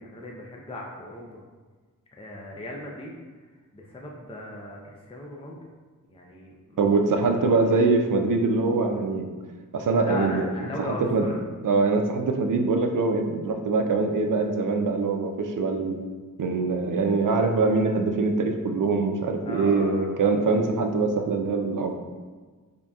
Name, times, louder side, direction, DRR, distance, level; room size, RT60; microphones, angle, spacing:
voice 1, 0.0-1.4 2.2-3.2 3.7-5.6 6.1-6.8 7.5-7.6 10.0-11.3 19.5-20.1, left 1 dB, 15° left, -2 dB, 0.5 m, -37 dB
voice 2, 6.8-9.3 9.7-10.5 10.8-11.3 11.6-16.0 16.4-21.9, right 3 dB, 70° right, 5 dB, 0.5 m, -23 dB
3.9 x 3.5 x 2.3 m, 1.4 s
cardioid pair, 55°, 33 cm